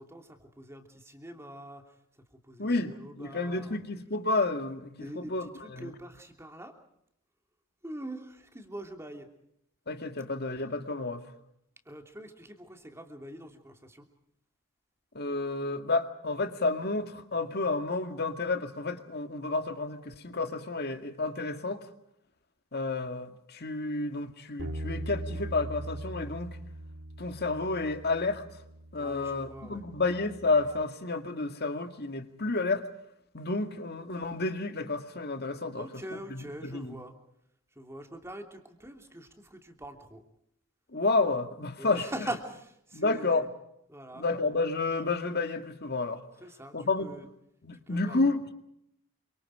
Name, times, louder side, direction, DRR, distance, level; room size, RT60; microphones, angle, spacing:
voice 1, 0.0-1.9 2.3-3.8 5.0-6.8 7.8-9.3 11.8-14.1 29.0-29.9 35.7-37.1 37.7-40.2 41.8-43.5 43.9-44.2 46.4-47.3 47.7-48.3, right 1 dB, 10° right, 3.0 m, -43 dB
voice 2, 2.6-5.9 9.9-11.2 15.1-21.8 22.7-26.6 27.2-28.4 28.9-32.9 33.3-36.0 36.3-37.0 40.9-42.1 42.9-43.5 44.1-46.2 46.7-47.2 47.6-48.5, left 3 dB, 45° left, 2.1 m, -30 dB
Bass guitar, 24.6-30.8, right 1 dB, 55° right, 2.0 m, -41 dB
28.5 x 25.5 x 4.9 m
head